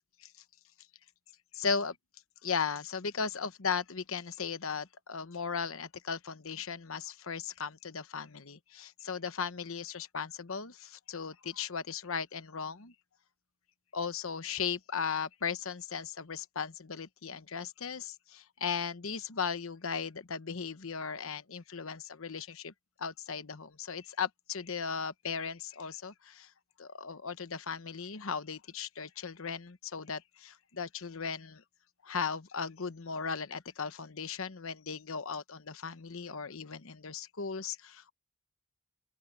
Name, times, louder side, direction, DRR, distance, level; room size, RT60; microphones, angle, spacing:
voice 1, 1.5-2.0 2.4-12.9 13.9-22.7 23.0-26.5 26.8-31.6 32.0-38.1, left 6 dB, 70° left, 1.0 m, -37 dB
open air
head